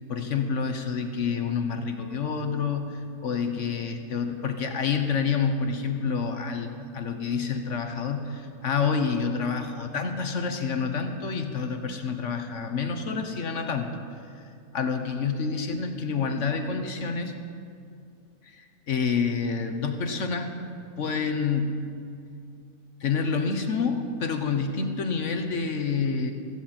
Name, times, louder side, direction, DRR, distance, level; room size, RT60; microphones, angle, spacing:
voice 1, 0.1-6.7 6.9-14.0 14.3-14.4 14.7-17.3 18.4-20.5 21.0-21.8 23.0-26.3, left 5 dB, 55° left, 6 dB, 1.2 m, -28 dB
16.5 x 15.5 x 4.3 m, 2.4 s
omnidirectional pair, 1.7 m